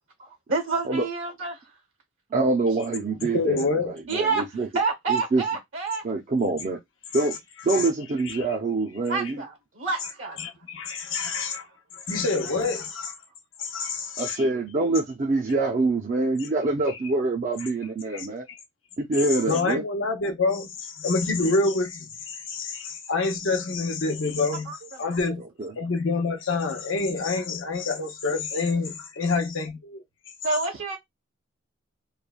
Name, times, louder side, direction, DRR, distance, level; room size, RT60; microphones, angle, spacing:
voice 1, 0.5-1.6 2.9-3.0 4.1-4.4 4.7-6.0 9.1-10.4 11.2-11.6 24.7-24.8 25.0-25.2 30.4-31.0, right 4 dB, 70° right, 0.9 m, -28 dB
voice 2, 2.3-4.7 5.1-5.4 6.0-6.8 7.1-7.4 7.6-9.4 14.2-18.4 19.0-19.8 25.6-25.7, right 3 dB, 40° right, 0.4 m, -25 dB
voice 3, 3.3-4.0 7.1-7.3 7.7-7.9 8.3-8.4 10.4-11.6 11.9-13.1 13.6-14.4 18.1-18.6 19.4-25.4 25.8-30.0, left 3 dB, 75° left, 0.7 m, -27 dB
3.1 x 2.1 x 2.3 m
head